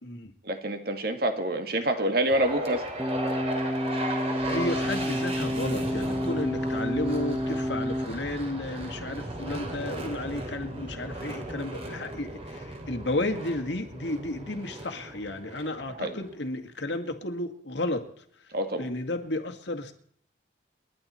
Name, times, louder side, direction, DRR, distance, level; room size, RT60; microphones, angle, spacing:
voice 1, 0.4-2.9 15.9-16.2 18.5-18.9, right 1 dB, 50° right, 6 dB, 2.0 m, -27 dB
sound 1, 2.2-16.4, right 1 dB, 30° right, 3.1 m, -36 dB
sound 2, 3.0-8.1, equal, 10° right, 1.0 m, -29 dB
voice 2, 4.5-18.0 18.8-19.9, left 1 dB, 65° left, 6 dB, 2.1 m, -32 dB
29.0 x 11.5 x 4.4 m, 0.63 s
head